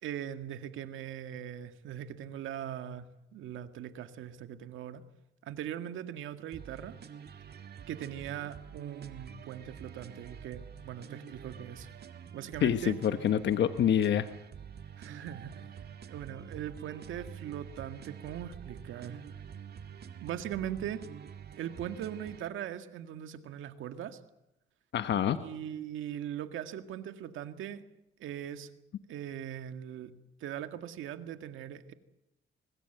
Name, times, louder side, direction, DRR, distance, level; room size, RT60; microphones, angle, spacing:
voice 1, 0.0-3.1 3.3-5.0 5.4-6.9 7.9-11.9 12.3-13.0 15.0-15.8 16.1-19.3 20.2-21.0 21.6-24.2 25.3-27.8 28.2-28.7 29.1-30.1 30.4-31.9, right 10 dB, 80° right, 8 dB, 1.9 m, -40 dB
sound 1, 6.5-22.5, right 8 dB, 55° right, 1.9 m, -47 dB
voice 2, 12.6-14.3 24.9-25.4, left 9 dB, 65° left, 10 dB, 1.2 m, -26 dB
25.0 x 20.0 x 8.1 m, 0.89 s
cardioid pair, 90°, 20 cm